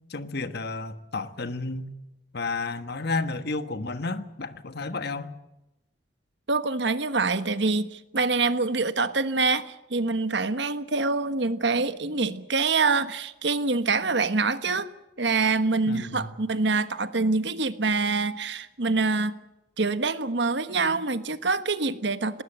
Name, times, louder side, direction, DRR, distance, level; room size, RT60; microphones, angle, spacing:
voice 1, 0.1-1.9 2.3-5.3 15.8-16.3, left 3 dB, 60° left, 11 dB, 1.4 m, -32 dB
voice 2, 6.5-14.9 15.2-19.3 19.8-22.4, right 3 dB, 65° right, 12 dB, 1.3 m, -25 dB
19.5 x 19.0 x 9.0 m, 0.94 s
head